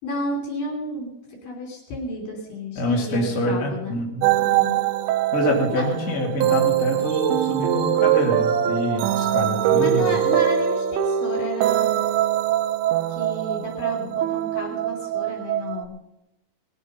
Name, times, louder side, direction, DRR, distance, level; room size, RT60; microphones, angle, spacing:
voice 1, 0.0-4.0 4.4-4.8 5.7-5.9 9.8-12.0 13.1-16.0, left 1 dB, 60° left, 1 dB, 4.6 m, -32 dB
voice 2, 2.7-4.3 5.3-10.1, equal, 25° left, -2 dB, 2.6 m, -25 dB
sound 1, 4.2-15.9, right 11 dB, 80° right, 2.6 m, -22 dB
20.5 x 8.2 x 5.6 m, 0.89 s
omnidirectional pair, 4.5 m